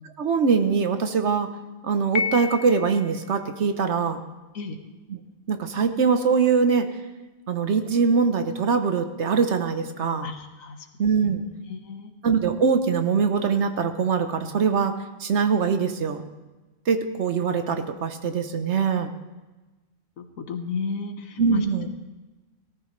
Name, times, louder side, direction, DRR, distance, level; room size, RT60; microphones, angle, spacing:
voice 1, 0.2-1.5 1.8-4.2 5.1-5.2 5.5-6.9 7.5-10.3 11.0-11.4 12.2-14.9 15.2-16.2 16.9-19.1 21.4-21.9, right 5 dB, 60° right, 8 dB, 1.1 m, -22 dB
Piano, 2.2-3.3, left 6 dB, 60° left, 0.8 m, -30 dB
voice 2, 10.2-10.8 11.2-11.3 11.7-12.1 20.2-21.6, left 4 dB, 85° left, 6 dB, 1.6 m, -32 dB
18.0 x 13.5 x 3.2 m, 1.2 s
omnidirectional pair, 1.4 m